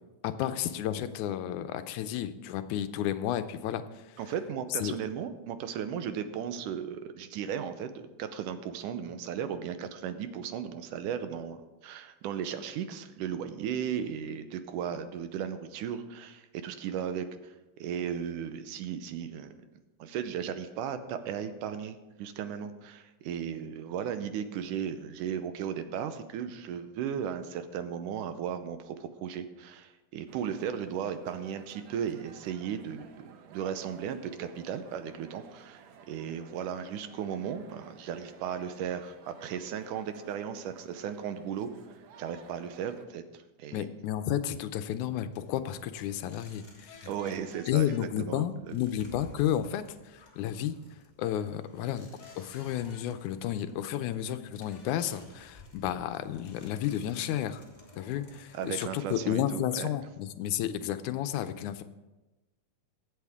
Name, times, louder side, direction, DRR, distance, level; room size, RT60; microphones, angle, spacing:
voice 1, 0.2-3.8 4.8-4.9 43.7-47.1 47.7-50.8 51.2-52.1 52.4-57.6 58.0-61.8, left 11 dB, 80° left, 10 dB, 2.0 m, -32 dB
voice 2, 4.2-19.7 20.0-41.7 42.2-43.9 47.0-48.8 58.5-59.9, right 8 dB, 85° right, 10 dB, 2.4 m, -36 dB
sound 1, 30.3-43.1, right 6 dB, 65° right, 1.8 m, -55 dB
sound 2, 45.3-60.3, left 2 dB, 15° left, 1.7 m, -57 dB
sound 3, 46.9-48.0 52.2-53.0 54.7-55.1, left 5 dB, 50° left, 1.4 m, -53 dB
23.0 x 8.2 x 3.6 m, 1.1 s
omnidirectional pair, 3.6 m